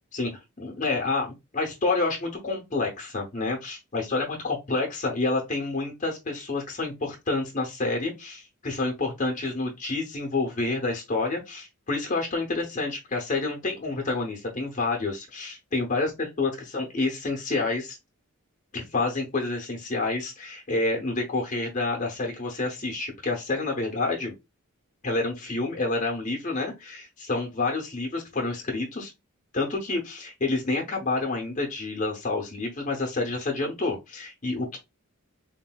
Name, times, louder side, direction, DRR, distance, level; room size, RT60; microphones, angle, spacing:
voice 1, 0.6-18.0 18.7-24.3 25.0-29.1 29.5-34.8, left 3 dB, 35° left, 0.7 m, -28 dB
3.4 x 2.5 x 2.2 m
head